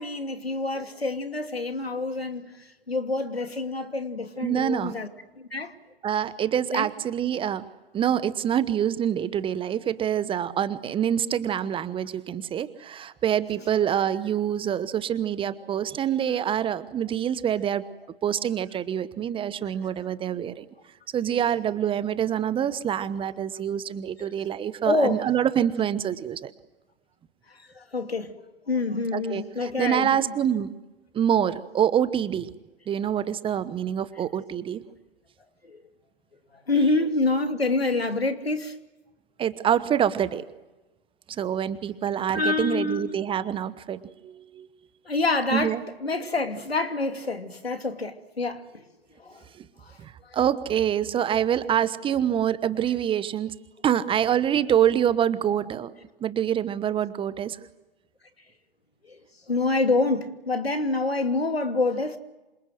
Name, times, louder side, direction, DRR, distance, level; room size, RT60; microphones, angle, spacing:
voice 1, 0.0-5.1 5.4-5.7 6.7-6.9 19.9-20.0 24.9-25.2 27.6-28.4 28.7-30.3 33.8-33.9 35.7-35.8 36.7-38.7 42.3-43.1 45.1-48.7 49.2-49.4 49.8-50.0 51.2-51.3 59.1-59.2 59.5-62.2, left 3 dB, 90° left, 2.6 m, -27 dB
voice 2, 4.4-5.0 6.0-7.6 7.9-17.8 18.2-20.6 21.1-26.5 29.1-30.7 31.1-32.5 32.9-34.8 39.4-40.5 41.3-44.7 45.5-45.8 49.6-49.7 50.0-53.6 53.8-55.9 56.2-57.6, right 9 dB, 15° right, 1.1 m, -26 dB
27.0 x 26.0 x 7.8 m
figure-of-eight pair, 115°, 30 cm